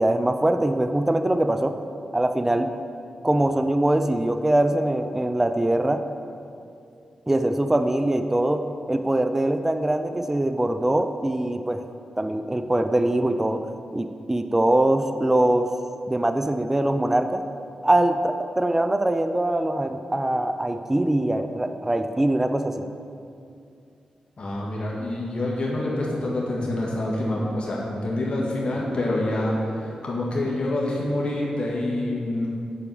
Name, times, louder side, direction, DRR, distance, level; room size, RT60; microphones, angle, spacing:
voice 1, 0.0-1.8 2.1-2.7 3.2-6.0 7.3-11.8 12.2-15.7 16.1-17.4 17.8-22.7, right 1 dB, 15° right, 8 dB, 0.5 m, -23 dB
voice 2, 24.4-32.5, left 1 dB, 50° left, -4 dB, 1.8 m, -26 dB
8.5 x 4.7 x 6.9 m, 2.5 s
cardioid pair, 60°, 2 cm